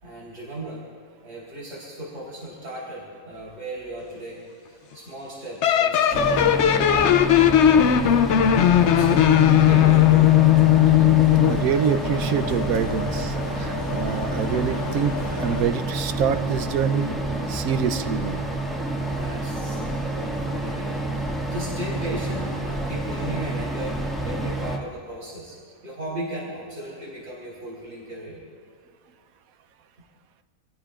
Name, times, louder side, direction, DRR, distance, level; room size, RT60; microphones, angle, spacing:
voice 1, 0.0-0.8 1.2-7.3 7.6-8.1 8.6-9.2 9.5-10.4 19.0-25.6 25.8-28.4, right 1 dB, 55° right, -6 dB, 4.2 m, -36 dB
sound 1, 5.6-11.6, left 11 dB, 60° left, 0.8 m, -17 dB
sound 2, 6.1-24.8, right 2 dB, ahead, 1.7 m, -29 dB
sound 3, 9.4-15.6, left 3 dB, 85° left, 1.7 m, -33 dB
voice 2, 11.4-17.2 17.5-18.4, right 7 dB, 80° right, 9 dB, 1.2 m, -26 dB
27.0 x 16.5 x 2.5 m, 2.2 s
omnidirectional pair, 1.5 m